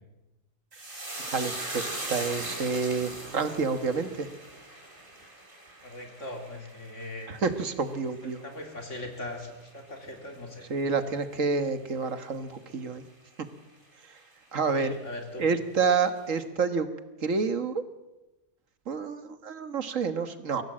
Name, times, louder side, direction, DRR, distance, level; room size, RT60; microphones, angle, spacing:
sound 1, 0.7-9.3 9.6-10.3 10.6-10.8, right 1 dB, 40° right, 4.3 m, -40 dB
voice 1, 1.3-4.3 7.3-8.4 10.7-13.0 14.5-14.9 15.4-16.9 17.2-17.8 18.9-20.6, right 5 dB, 75° right, 10 dB, 1.8 m, -28 dB
voice 2, 5.8-7.3 8.4-10.7 14.7-15.4, left 1 dB, 65° left, 3 dB, 3.9 m, -40 dB
23.5 x 17.0 x 7.7 m, 1.0 s
omnidirectional pair, 1.3 m